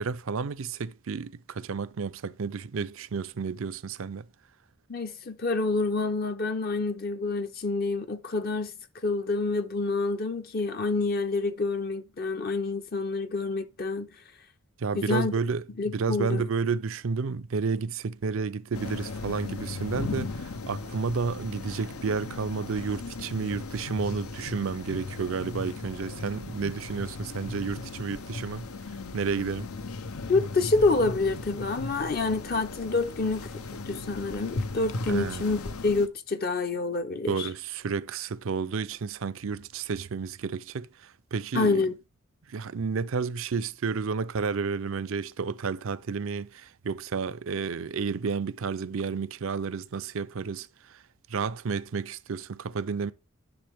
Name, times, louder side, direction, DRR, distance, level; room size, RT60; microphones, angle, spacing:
voice 1, 0.0-4.3 14.8-28.7 29.1-29.7 35.1-35.6 37.3-41.8 42.5-51.0 51.3-53.1, right 5 dB, 70° right, 0.5 m, -31 dB
voice 2, 4.9-8.7 9.0-14.1 15.0-15.4 15.8-16.5 30.3-33.5 33.8-37.5 41.5-41.9, left 3 dB, 45° left, 0.6 m, -27 dB
sound 1, 18.7-36.1, left 3 dB, 90° left, 0.8 m, -37 dB
10.5 x 6.3 x 3.5 m
head